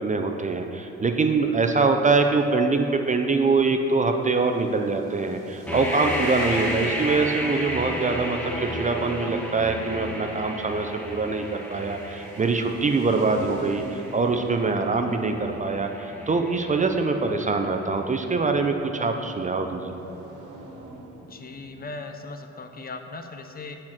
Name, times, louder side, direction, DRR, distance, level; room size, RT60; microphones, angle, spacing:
voice 1, 0.0-20.0, right 3 dB, 25° right, 5 dB, 0.5 m, -24 dB
sound 1, 4.1-22.0, right 2 dB, 75° right, 1.3 m, -45 dB
sound 2, 5.7-17.5, left 1 dB, 5° left, 1.1 m, -33 dB
voice 2, 21.3-23.8, left 3 dB, 30° left, 6 dB, 0.6 m, -38 dB
8.6 x 4.4 x 5.9 m, 3.0 s
cardioid pair, 90°, 30 cm